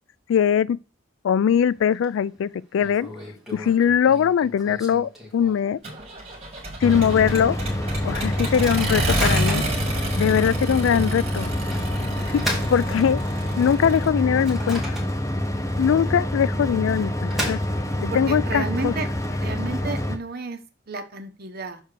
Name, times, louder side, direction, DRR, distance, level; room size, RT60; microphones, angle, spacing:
voice 1, 0.3-0.8 1.2-3.1 3.5-5.8 6.8-7.6 8.0-9.6 10.2-11.5 12.3-12.4 12.7-13.2 13.6-15.0 15.8-17.6 18.0-18.9, left 8 dB, 80° left, 0.3 m, -21 dB
Microwave oven, 1.5-2.0 2.3-2.4 2.8-5.8 6.3-6.4 6.6-7.0 7.5-7.6 8.3-9.8 10.4-10.6 11.7-13.5 14.0-15.5 15.8-15.9 16.7-18.1, equal, ahead, 2.5 m, -34 dB
Accelerating revving vroom, 5.8-14.1, right 1 dB, 35° right, 2.5 m, -30 dB
sound 1, 6.8-20.2, left 1 dB, 15° left, 0.9 m, -27 dB
voice 2, 10.2-10.6 10.9-11.1 12.0-12.9 18.1-19.1 19.4-21.8, right 3 dB, 55° right, 1.1 m, -34 dB
6.5 x 4.5 x 6.6 m
head